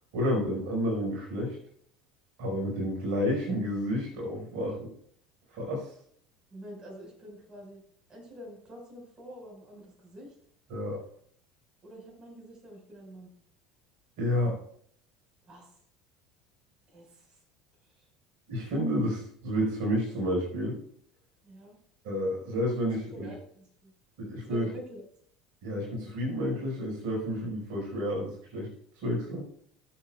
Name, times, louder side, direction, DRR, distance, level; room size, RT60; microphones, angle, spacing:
voice 1, 0.1-1.6 2.4-4.9 5.5-5.9 10.7-11.0 14.2-14.6 18.5-20.8 22.0-23.3 24.2-24.6 25.6-28.7 29.0-29.4, equal, 60° right, -1 dB, 4.5 m, -30 dB
voice 2, 6.5-7.8 8.1-10.3 11.8-13.3 15.4-15.8 16.9-17.4 17.9-18.1 21.4-21.8 22.9-23.9 24.4-25.0, equal, 30° right, -1 dB, 4.7 m, -47 dB
19.5 x 7.5 x 2.3 m, 0.63 s
figure-of-eight pair, 70°, 3 cm